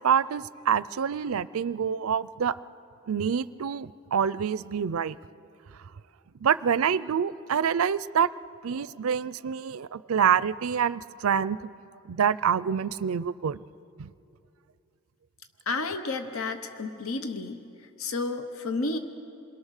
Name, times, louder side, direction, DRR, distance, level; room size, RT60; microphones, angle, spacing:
voice 1, 0.0-2.5 3.1-5.1 6.4-8.3 8.6-11.7 12.1-13.6 14.0-14.1, right 7 dB, 70° right, 18 dB, 0.4 m, -26 dB
voice 2, 15.7-17.6 18.0-19.0, left 3 dB, 70° left, 8 dB, 0.9 m, -31 dB
28.0 x 22.0 x 6.5 m, 2.7 s
head